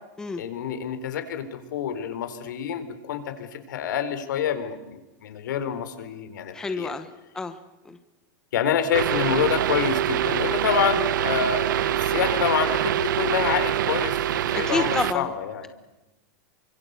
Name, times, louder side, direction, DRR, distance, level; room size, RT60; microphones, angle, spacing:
voice 1, 0.4-4.8 5.2-6.9 8.5-15.7, left 8 dB, 80° left, 9 dB, 4.1 m, -27 dB
voice 2, 6.5-7.1 7.3-7.6 7.9-8.0 14.5-15.3, left 3 dB, 5° left, 9 dB, 1.0 m, -29 dB
sound 1, 8.9-15.1, right 11 dB, 90° right, 1.1 m, -25 dB
28.5 x 24.5 x 8.3 m, 1.0 s
supercardioid pair, 175°, 10 cm